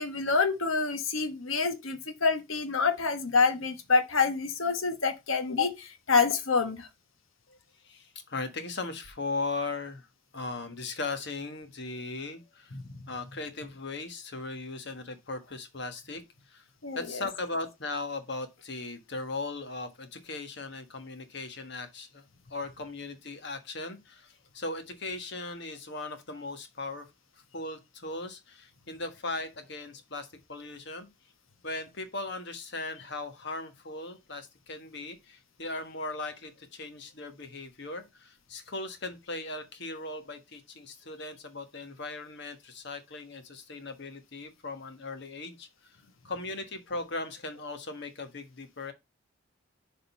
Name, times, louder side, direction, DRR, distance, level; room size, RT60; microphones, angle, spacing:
voice 1, 0.0-6.9 16.8-17.2, left 4 dB, 75° left, 1.2 m, -27 dB
voice 2, 7.8-10.1 10.3-12.8 13.1-16.7 16.9-27.1 27.5-31.1 31.6-45.7 46.2-48.9, left 3 dB, 55° left, 1.3 m, -38 dB
6.7 x 3.8 x 5.4 m
head